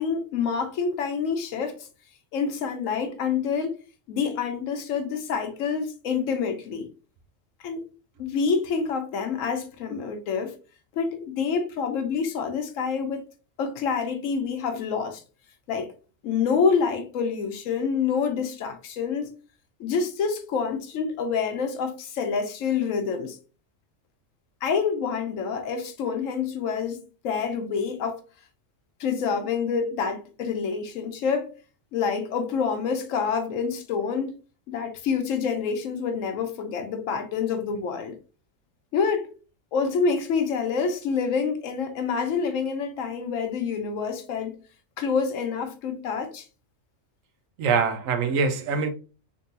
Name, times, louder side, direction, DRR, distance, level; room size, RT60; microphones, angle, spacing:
voice 1, 0.0-1.9 2.3-3.8 4.1-6.9 7.6-7.8 8.2-10.5 11.0-13.2 13.6-15.2 15.7-15.9 16.2-19.3 19.8-23.4 24.6-28.2 29.0-31.5 31.9-34.4 34.7-38.2 38.9-39.3 39.7-44.6 45.0-46.5, left 5 dB, 90° left, 1.0 m, -27 dB
voice 2, 47.6-48.9, right 5 dB, 85° right, 1.0 m, -24 dB
3.7 x 2.7 x 2.6 m
omnidirectional pair, 1.3 m